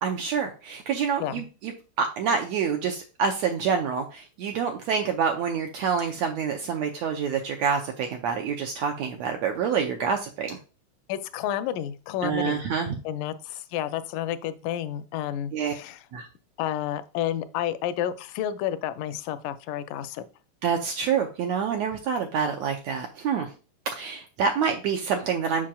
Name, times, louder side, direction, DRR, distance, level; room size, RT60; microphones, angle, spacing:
voice 1, 0.0-1.7 2.0-10.6 12.2-13.0 15.5-15.7 16.1-16.3 20.6-23.5 23.9-25.7, right 6 dB, 80° right, 4 dB, 1.6 m, -27 dB
voice 2, 11.1-12.7 13.0-16.1 16.6-20.2, left 11 dB, 85° left, 12 dB, 2.1 m, -30 dB
7.4 x 6.0 x 2.3 m, 0.34 s
omnidirectional pair, 3.7 m